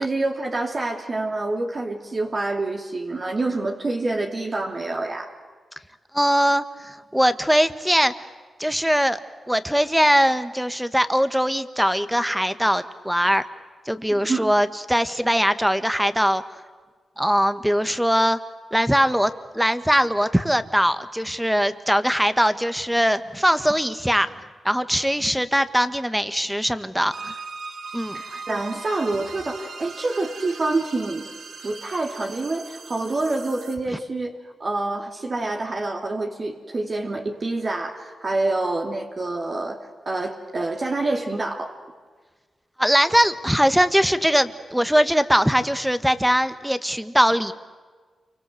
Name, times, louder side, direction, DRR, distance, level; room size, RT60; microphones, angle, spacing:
voice 1, 0.0-5.3 14.1-14.5 28.1-31.3 31.6-41.8, right 2 dB, 45° right, 1 dB, 2.8 m, -27 dB
voice 2, 6.1-8.1 8.6-9.2 9.5-13.5 13.8-16.4 17.2-18.4 18.7-24.3 24.6-27.4 27.9-28.4 33.9-34.0 42.8-47.5, equal, 5° right, 11 dB, 1.7 m, -21 dB
sound 1, 27.1-33.8, right 4 dB, 70° right, 2.6 m, -39 dB
28.5 x 24.5 x 8.0 m, 1.5 s
supercardioid pair, 45°, 0 cm